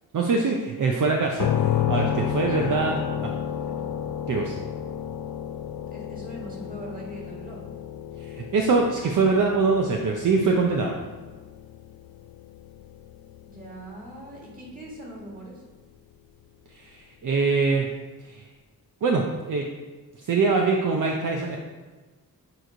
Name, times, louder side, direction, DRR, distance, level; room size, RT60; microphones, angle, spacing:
voice 1, 0.1-2.9 3.2-3.4 4.3-4.6 8.2-11.0 16.7-17.9 18.2-18.5 19.0-19.7 20.2-21.6, right 4 dB, 55° right, 1 dB, 0.7 m, -23 dB
sound 1, 1.4-15.1, left 9 dB, 70° left, 0.5 m, -32 dB
voice 2, 2.4-2.8 3.7-3.9 5.9-7.6 13.5-15.6, right 1 dB, 25° right, -4 dB, 2.0 m, -40 dB
8.9 x 3.1 x 5.1 m, 1.3 s
wide cardioid pair, 120°, 37 cm